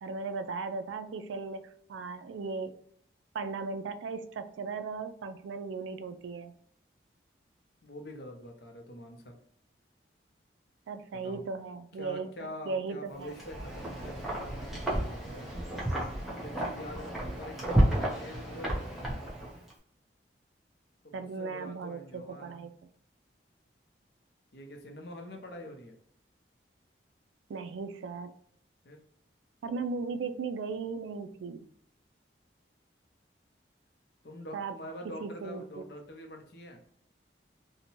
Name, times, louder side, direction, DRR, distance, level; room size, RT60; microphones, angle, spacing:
voice 1, 0.0-2.8 3.3-6.5 10.9-13.3 21.1-22.7 27.5-28.3 29.6-31.7 34.5-34.7 35.0-35.6, right 4 dB, 85° right, 10 dB, 0.3 m, -37 dB
voice 2, 7.8-9.3 11.1-11.4 12.0-15.5 16.3-18.9 21.0-22.6 24.5-26.0 28.8-29.0 34.2-36.8, left 1 dB, 60° left, 3 dB, 0.6 m, -45 dB
Wind, 13.2-19.7, right 1 dB, ahead, 0.6 m, -31 dB
2.7 x 2.1 x 2.9 m, 0.67 s
head